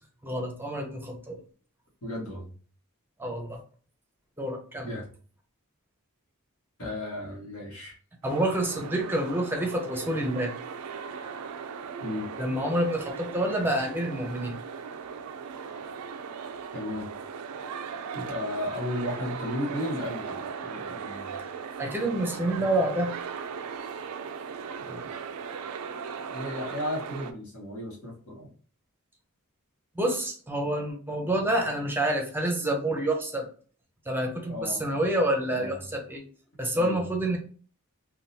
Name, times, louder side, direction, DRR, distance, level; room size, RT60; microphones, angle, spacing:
voice 1, 0.2-1.4 3.2-3.6 4.4-4.9 8.2-10.5 12.4-14.5 21.8-23.1 30.0-33.5 34.1-36.2 36.6-37.4, right 1 dB, 10° right, 2 dB, 0.6 m, -28 dB
voice 2, 2.0-2.5 4.9-5.1 6.8-8.0 12.0-12.3 16.7-17.1 18.1-21.4 24.8-25.3 26.3-28.5 34.5-34.8 35.5-35.9 36.7-37.1, left 1 dB, 70° left, -5 dB, 1.4 m, -35 dB
sound 1, 8.2-27.3, right 6 dB, 80° right, 0.4 m, -38 dB
3.7 x 2.3 x 2.7 m, 0.42 s
head